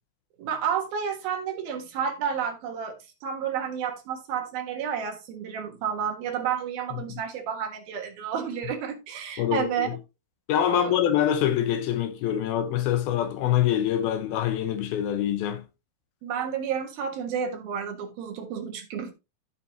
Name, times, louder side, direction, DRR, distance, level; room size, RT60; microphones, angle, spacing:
voice 1, 0.4-3.0 3.2-9.9 10.7-11.0 16.2-19.1, right 7 dB, 70° right, 3.3 m, -31 dB
voice 2, 9.4-10.0 10.5-15.6, left 10 dB, 75° left, 2.7 m, -25 dB
14.0 x 5.8 x 2.9 m
omnidirectional pair, 4.6 m